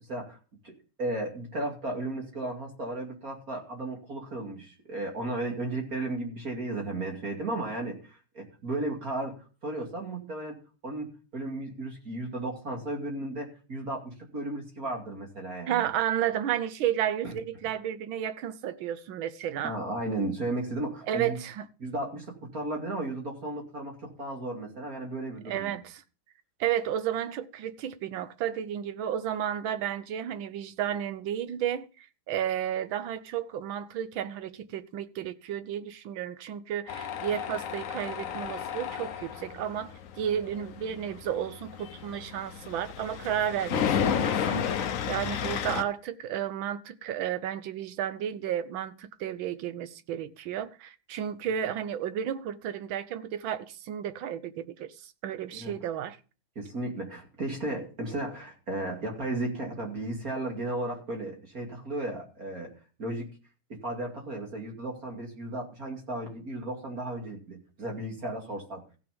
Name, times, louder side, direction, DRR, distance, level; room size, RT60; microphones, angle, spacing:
voice 1, 0.6-9.3 9.6-15.9 17.2-17.3 19.6-21.4 21.8-25.8 55.5-55.8 56.6-62.7 63.0-63.3 63.7-68.8, right 2 dB, 40° right, 2.9 m, -34 dB
voice 2, 15.7-19.7 21.1-21.7 25.4-26.0 26.6-31.9 32.3-56.2, right 10 dB, 70° right, 1.5 m, -32 dB
Tools, 36.9-45.8, left 8 dB, 70° left, 0.7 m, -32 dB
15.5 x 6.3 x 5.2 m
omnidirectional pair, 2.4 m